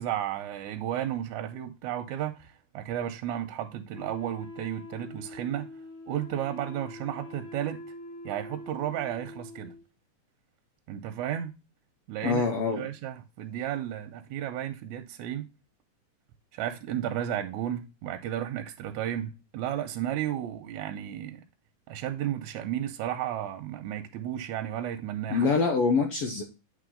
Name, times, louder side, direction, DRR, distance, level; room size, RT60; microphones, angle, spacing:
voice 1, 0.0-5.7 6.1-7.8 8.2-9.7 10.9-11.5 12.1-15.4 16.5-21.4 21.9-25.5, right 11 dB, 80° right, 1.7 m, -33 dB
Wind instrument woodwind instrument, 3.9-9.9, left 2 dB, 50° left, 1.6 m, -44 dB
voice 2, 12.2-12.8 25.3-26.4, left 4 dB, 80° left, 1.3 m, -25 dB
8.5 x 3.2 x 3.7 m
omnidirectional pair, 3.7 m